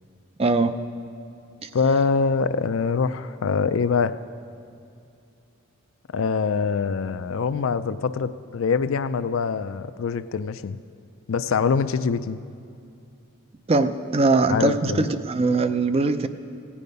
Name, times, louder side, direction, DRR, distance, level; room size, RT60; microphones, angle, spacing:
voice 1, 0.4-0.8 1.6-1.7 13.7-16.3, right 3 dB, 30° right, 10 dB, 0.4 m, -21 dB
voice 2, 1.7-4.2 6.1-10.8 11.3-12.4 14.5-15.1, left 5 dB, 65° left, 12 dB, 0.4 m, -24 dB
17.5 x 8.5 x 5.3 m, 2.6 s
head